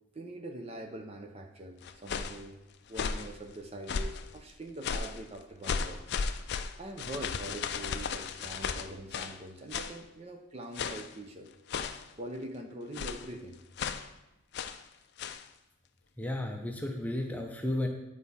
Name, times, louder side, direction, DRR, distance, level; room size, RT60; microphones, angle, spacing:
voice 1, 0.1-2.6 2.9-6.1 6.8-11.5 12.1-13.6, right 1 dB, 30° right, 4 dB, 0.6 m, -43 dB
sound 1, 1.8-2.4 2.9-3.3 3.9-4.3 4.8-5.2 5.6-9.4 9.7-10.0 10.7-11.1 11.7-12.1 12.9-13.3 13.8-14.1 14.5-14.8 15.2-15.4, left 5 dB, 50° left, 0.4 m, -35 dB
voice 2, 16.2-17.9, left 1 dB, 5° left, 2 dB, 0.7 m, -33 dB
10.0 x 4.7 x 4.2 m, 0.97 s
head